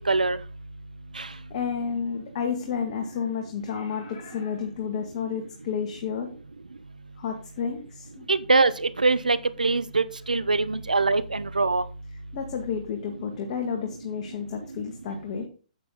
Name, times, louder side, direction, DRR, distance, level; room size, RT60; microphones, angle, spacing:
voice 1, 0.1-0.4 1.2-1.3 8.3-11.8, right 3 dB, 85° right, 16 dB, 0.7 m, -23 dB
voice 2, 1.5-6.3 7.2-8.3 12.3-15.5, left 6 dB, 45° left, 3 dB, 2.0 m, -31 dB
8.9 x 8.2 x 3.9 m, 0.35 s
figure-of-eight pair, 125°, 4 cm